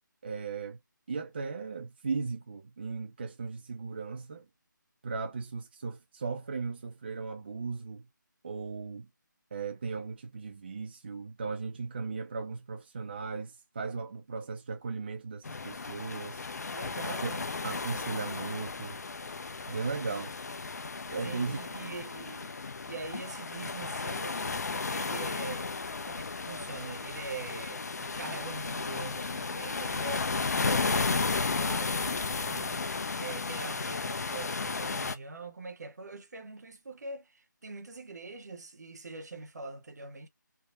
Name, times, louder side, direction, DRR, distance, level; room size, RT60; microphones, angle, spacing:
voice 1, 0.2-0.8 1.1-4.5 5.0-8.1 8.4-9.1 9.5-16.4 17.0-17.3 17.6-19.0 19.7-20.4 21.1-21.6, right 4 dB, 30° right, 0.3 m, -37 dB
sound 1, 15.4-35.2, left 4 dB, 55° left, 0.5 m, -34 dB
voice 2, 16.7-17.5 21.2-24.4 24.9-32.9 33.2-40.3, right 3 dB, 55° right, 0.7 m, -43 dB
3.3 x 2.1 x 2.4 m
figure-of-eight pair, 155°, 11 cm